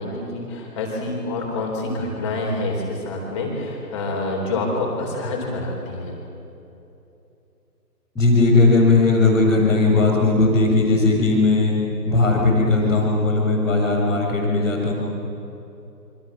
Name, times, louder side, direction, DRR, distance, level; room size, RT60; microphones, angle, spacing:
voice 1, 0.0-6.2, left 2 dB, 15° left, 0 dB, 4.0 m, -27 dB
voice 2, 8.1-11.7 12.0-14.9, left 3 dB, ahead, -16 dB, 1.2 m, -17 dB
27.5 x 25.0 x 7.4 m, 2.9 s
figure-of-eight pair, 155°, 49 cm